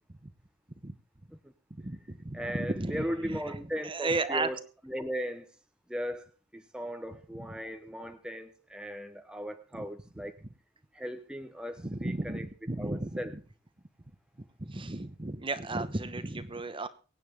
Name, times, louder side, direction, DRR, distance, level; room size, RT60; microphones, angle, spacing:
voice 1, 1.8-3.0 3.3-3.4 3.8-4.5 11.8-13.2 14.6-16.9, right 2 dB, 25° right, 12 dB, 1.0 m, -33 dB
voice 2, 2.3-5.5 5.9-6.3 6.5-10.3 10.9-12.5 12.8-13.3 14.8-14.9, equal, 5° right, 7 dB, 1.0 m, -37 dB
23.5 x 9.1 x 3.6 m, 0.36 s
head